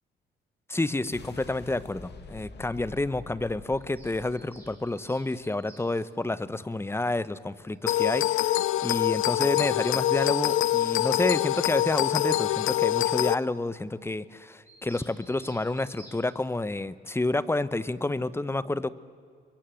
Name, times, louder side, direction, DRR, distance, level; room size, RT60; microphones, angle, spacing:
voice 1, 0.7-18.9, left 2 dB, 10° left, 16 dB, 0.9 m, -29 dB
sound 1, 0.9-5.5, left 4 dB, 60° left, 2.3 m, -47 dB
Bird vocalization bird call bird song, 3.7-5.9 7.3-7.4 7.7-7.8 8.0-8.1 8.4-8.5 8.7-8.8 9.1-9.2 9.5-11.5 14.7-16.2, right 1 dB, 10° right, 7.9 m, -53 dB
sound 2, 7.9-13.3, left 14 dB, 85° left, 0.6 m, -25 dB
28.0 x 22.5 x 7.7 m, 2.1 s
cardioid pair, 90°, 20 cm